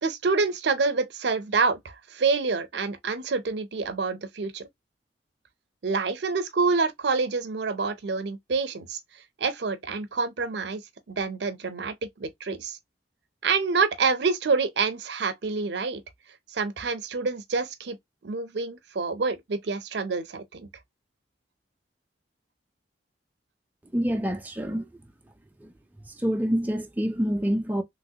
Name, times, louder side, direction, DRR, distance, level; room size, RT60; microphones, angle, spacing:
voice 1, 0.0-4.7 5.8-9.0 9.4-10.8 11.1-12.8 13.4-16.0 16.5-18.0 18.2-20.7, right 4 dB, 65° right, 0.5 m, -27 dB
voice 2, 23.9-24.9 25.6-25.7 26.2-27.8, equal, 10° right, 0.4 m, -26 dB
3.0 x 2.9 x 2.7 m
head